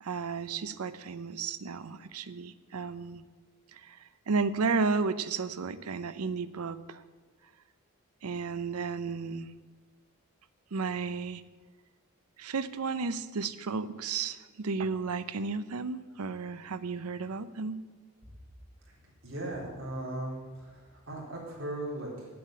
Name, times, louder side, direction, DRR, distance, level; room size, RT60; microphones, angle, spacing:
voice 1, 0.0-3.2 3.7-4.0 4.3-7.0 8.2-9.5 10.7-11.4 12.4-17.8, right 4 dB, 90° right, 13 dB, 0.6 m, -33 dB
voice 2, 19.2-22.3, right 1 dB, 60° right, -4 dB, 3.8 m, -38 dB
8.6 x 8.4 x 8.6 m, 1.3 s
head